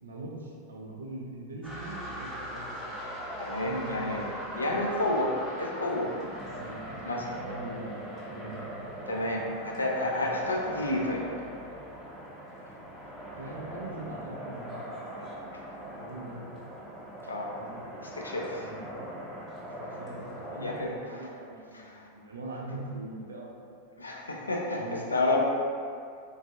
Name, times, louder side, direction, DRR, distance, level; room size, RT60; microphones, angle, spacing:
voice 1, 0.0-2.9 3.6-4.4 6.4-6.9 7.4-8.0 8.2-8.9 13.4-14.8 15.9-16.5 17.5-17.8 18.6-18.9 19.8-20.2 20.5-23.5 24.7-25.1, right 2 dB, 70° right, -2 dB, 0.4 m, -41 dB
sound 1, 1.6-20.8, equal, 15° right, 0.6 m, -40 dB
voice 2, 3.4-4.2 4.5-6.1 7.0-7.4 9.1-11.3 15.5-15.6 17.2-17.5 18.0-18.7 20.6-20.9 21.7-22.1 24.0-25.4, left 2 dB, 80° left, -1 dB, 0.3 m, -30 dB
2.4 x 2.3 x 2.6 m, 2.3 s
figure-of-eight pair, 90°, 0 cm